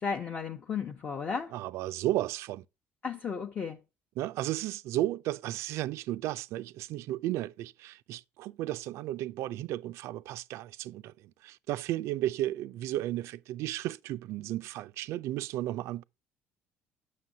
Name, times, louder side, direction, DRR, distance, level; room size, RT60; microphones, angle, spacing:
voice 1, 0.0-1.5 3.0-3.8, left 6 dB, 35° left, 0.8 m, -34 dB
voice 2, 1.5-2.6 4.2-16.0, right 14 dB, 70° right, 0.4 m, -34 dB
7.6 x 6.2 x 2.7 m
cardioid pair, 115°, 5 cm